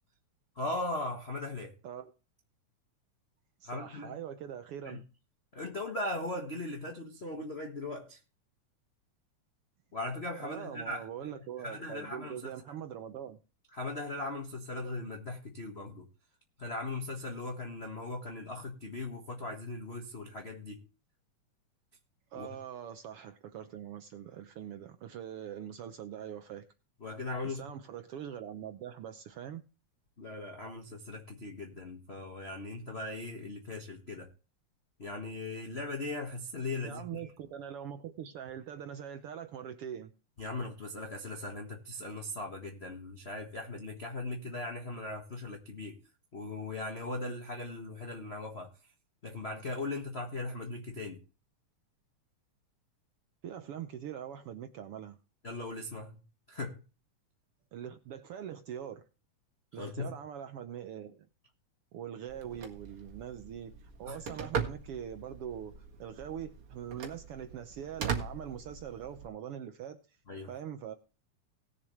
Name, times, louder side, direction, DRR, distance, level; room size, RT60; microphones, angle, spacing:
voice 1, 0.5-1.8 3.6-4.1 4.8-5.0 5.5-8.2 9.9-11.3 11.6-12.5 13.7-16.1 16.6-20.8 22.4-22.5 27.0-27.6 30.2-34.3 35.0-37.2 40.4-46.0 46.3-48.7 49.2-51.2 55.4-56.2 56.5-56.8 59.7-60.1 64.1-64.2 70.3-70.5, left 2 dB, 40° left, 0.9 m, -39 dB
voice 2, 3.6-5.1 10.4-13.4 22.3-26.6 27.4-29.6 36.8-40.1 53.4-55.2 57.7-59.0 59.7-61.3 61.9-70.0 70.5-70.9, right 9 dB, 75° right, 1.4 m, -43 dB
Telephone, 62.3-69.3, right 6 dB, 50° right, 2.3 m, -40 dB
19.0 x 7.1 x 3.2 m
omnidirectional pair, 3.5 m